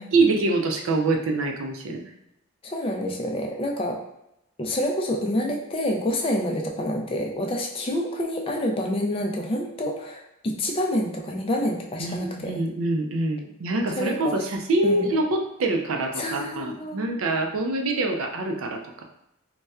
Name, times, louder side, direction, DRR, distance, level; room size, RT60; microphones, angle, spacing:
voice 1, 0.1-2.1 12.0-19.0, right 2 dB, 80° right, 3 dB, 0.4 m, -25 dB
voice 2, 2.6-4.0 4.6-12.5 14.0-14.4 14.8-15.1 16.2-17.0, left 1 dB, 25° left, 1 dB, 0.3 m, -27 dB
4.1 x 2.2 x 2.3 m, 0.82 s
head